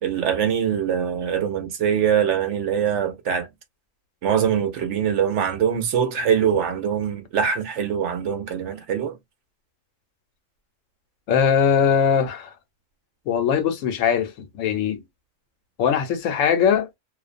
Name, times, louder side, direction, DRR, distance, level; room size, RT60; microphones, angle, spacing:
voice 1, 0.0-3.5 4.2-9.2, right 8 dB, 70° right, 0.8 m, -23 dB
voice 2, 11.3-12.5 13.3-15.0 15.8-16.9, left 7 dB, 75° left, 1.0 m, -21 dB
2.4 x 2.1 x 2.4 m
omnidirectional pair, 1.4 m